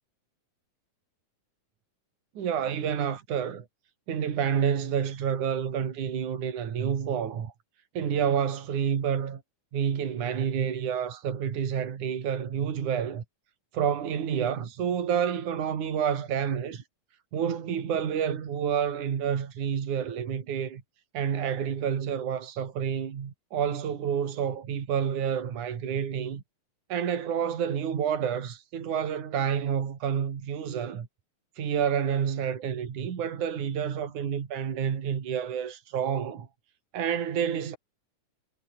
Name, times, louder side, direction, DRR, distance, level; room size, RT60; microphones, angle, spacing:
voice 1, 2.4-3.7 4.1-7.5 8.0-9.4 9.7-13.2 13.7-16.8 17.3-20.8 21.1-26.4 26.9-31.1 31.6-36.5 36.9-37.8, right 8 dB, 70° right, 4.1 m, -29 dB
omnidirectional pair, 3.7 m